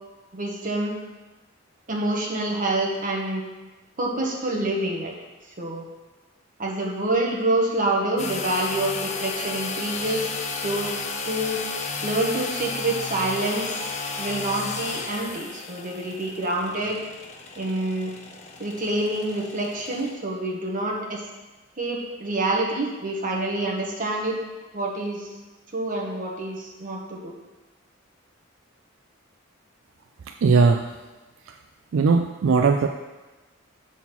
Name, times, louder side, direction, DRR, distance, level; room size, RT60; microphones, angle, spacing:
voice 1, 0.3-1.0 1.9-3.4 4.0-5.1 5.6-5.8 6.6-10.3 10.6-10.9 11.3-11.6 12.0-13.7 14.2-17.0 17.6-18.1 18.6-21.3 21.8-24.4 24.7-25.3 25.7-27.3, right 1 dB, 40° right, -1 dB, 1.3 m, -27 dB
sound 1, 8.2-20.1, left 4 dB, 35° left, 0.6 m, -33 dB
voice 2, 30.4-30.9 31.9-32.9, right 4 dB, 70° right, 4 dB, 0.4 m, -18 dB
7.1 x 4.0 x 5.9 m, 1.2 s
head